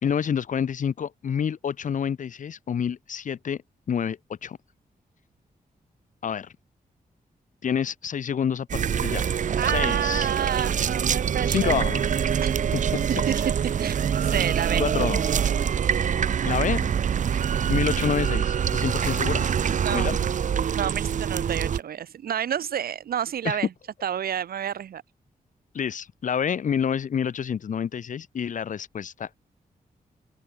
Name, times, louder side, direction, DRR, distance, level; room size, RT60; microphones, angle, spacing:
voice 1, 0.0-3.6 3.9-4.6 6.2-6.5 7.6-9.3 9.6-10.3 11.5-12.1 12.7-13.1 14.8-15.2 16.4-16.9 17.7-19.4 19.9-20.2 23.4-23.6 25.7-29.4, left 7 dB, 60° left, 0.8 m, -28 dB
sound 1, 8.7-21.8, right 8 dB, 55° right, 0.6 m, -25 dB
voice 2, 9.6-11.8 12.4-12.6 13.3-13.4 13.8-14.8 17.2-17.5 19.6-20.1 20.7-23.7 24.0-25.0, right 9 dB, 90° right, 1.2 m, -29 dB
open air
wide cardioid pair, 130°, 15 cm